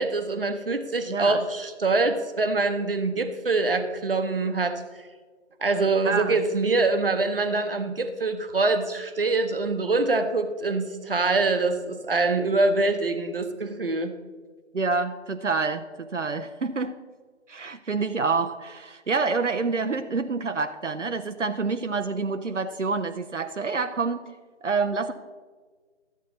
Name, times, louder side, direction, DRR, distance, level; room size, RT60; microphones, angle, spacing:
voice 1, 0.0-4.8 5.6-14.1, right 3 dB, 50° right, 8 dB, 0.9 m, -24 dB
voice 2, 1.1-1.4 6.0-6.4 14.7-17.0 17.5-24.3 24.6-25.1, right 4 dB, 80° right, 9 dB, 0.7 m, -27 dB
12.5 x 8.3 x 3.9 m, 1.5 s
figure-of-eight pair, 160°, 36 cm